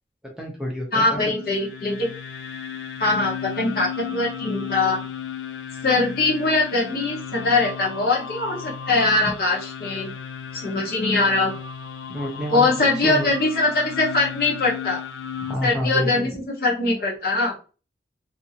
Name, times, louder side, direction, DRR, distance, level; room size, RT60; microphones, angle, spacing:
voice 1, 0.4-1.2 12.1-12.7 13.0-13.3 15.4-16.3, left 1 dB, 5° right, -2 dB, 0.6 m, -28 dB
voice 2, 0.9-2.1 3.0-5.0 5.8-10.1 10.5-11.5 12.5-15.0 15.6-16.3 16.6-17.6, left 3 dB, 55° left, -2 dB, 0.9 m, -22 dB
sound 1, 1.2-15.5, left 7 dB, 80° left, 0.4 m, -35 dB
2.7 x 2.6 x 2.7 m, 0.34 s
head